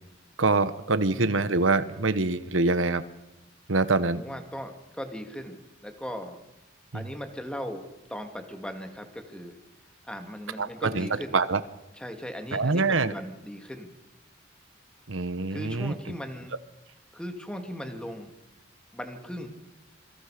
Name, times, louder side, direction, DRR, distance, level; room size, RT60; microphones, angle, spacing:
voice 1, 0.4-3.0 3.7-4.2 6.9-7.0 10.6-11.1 11.3-11.6 12.5-13.1 15.1-15.9, right 3 dB, 85° right, 13 dB, 1.1 m, -25 dB
voice 2, 1.1-1.6 4.1-6.4 6.9-7.8 8.1-9.6 10.0-11.4 11.9-13.9 15.5-16.6 17.1-18.3 18.9-19.5, equal, 5° left, 5 dB, 2.5 m, -38 dB
27.5 x 24.5 x 5.1 m, 0.95 s
head